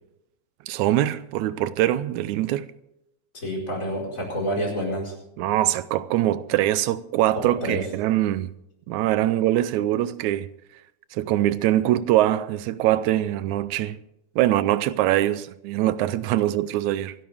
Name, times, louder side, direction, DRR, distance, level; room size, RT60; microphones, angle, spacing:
voice 1, 0.7-2.7 5.4-8.5 8.9-10.5 11.1-14.0 14.4-17.1, right 14 dB, 85° right, 2.1 m, -23 dB
voice 2, 3.3-5.1 7.4-7.8, equal, 25° left, 5.1 m, -28 dB
26.0 x 12.0 x 3.5 m
omnidirectional pair, 3.3 m